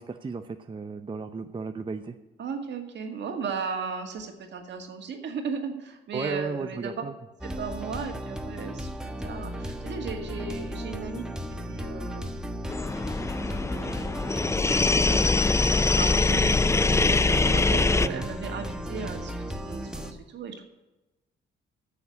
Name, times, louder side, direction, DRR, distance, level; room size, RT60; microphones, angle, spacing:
voice 1, 0.0-2.2 6.1-7.1 13.2-13.3 18.0-18.3, right 4 dB, 25° right, 7 dB, 0.6 m, -34 dB
voice 2, 2.4-7.0 7.4-8.9 9.2-12.6 13.5-14.7 15.0-15.2 15.7-20.6, right 5 dB, 65° right, 4 dB, 2.0 m, -37 dB
sound 1, 7.4-20.1, equal, 5° right, 1.2 m, -35 dB
sound 2, 12.7-18.1, left 3 dB, 15° left, 0.4 m, -23 dB
9.7 x 7.1 x 8.3 m, 1.0 s
cardioid pair, 90°, 20 cm